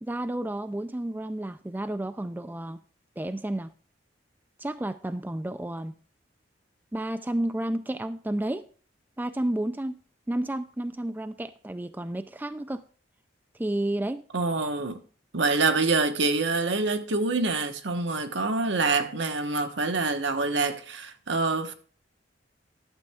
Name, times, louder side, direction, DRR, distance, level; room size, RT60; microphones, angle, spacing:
voice 1, 0.0-2.8 3.2-3.7 4.6-5.9 6.9-8.6 9.2-10.0 10.3-12.8 13.6-14.2, right 1 dB, 10° right, 0.4 m, -31 dB
voice 2, 14.3-15.0 15.3-21.7, right 3 dB, 70° right, 1.2 m, -26 dB
11.5 x 7.6 x 3.5 m
head